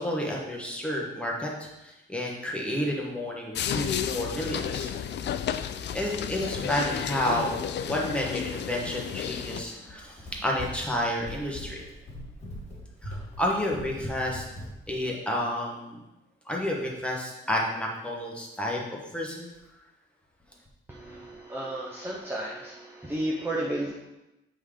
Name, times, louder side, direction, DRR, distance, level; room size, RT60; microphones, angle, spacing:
voice 1, 0.0-4.9 5.9-11.8 13.0-14.4 14.9-16.0 16.5-19.5, left 1 dB, 5° left, -3 dB, 1.3 m, -30 dB
sound 1, 3.5-9.6, left 9 dB, 60° left, 0.4 m, -32 dB
Run, 9.8-15.0, left 1 dB, 35° left, 2.0 m, -41 dB
voice 2, 20.9-23.9, right 1 dB, 10° right, -3 dB, 0.7 m, -33 dB
7.9 x 3.8 x 5.0 m, 0.96 s
wide cardioid pair, 155°, 21 cm